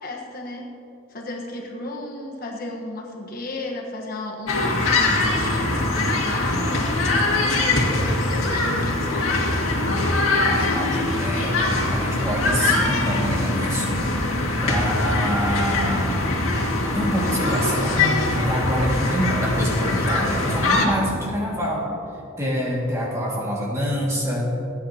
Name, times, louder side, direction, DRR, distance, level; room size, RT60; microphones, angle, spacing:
voice 1, 0.0-0.7 1.1-7.1 7.7-9.7, left 2 dB, 45° left, 0 dB, 1.3 m, -34 dB
sound 1, 4.5-20.9, left 2 dB, 75° left, 2.2 m, -22 dB
voice 2, 10.3-11.6 11.9-14.0 14.6-16.3 16.9-21.9 22.4-24.5, equal, 15° right, -4 dB, 2.1 m, -26 dB
26.5 x 9.6 x 2.9 m, 2.8 s
head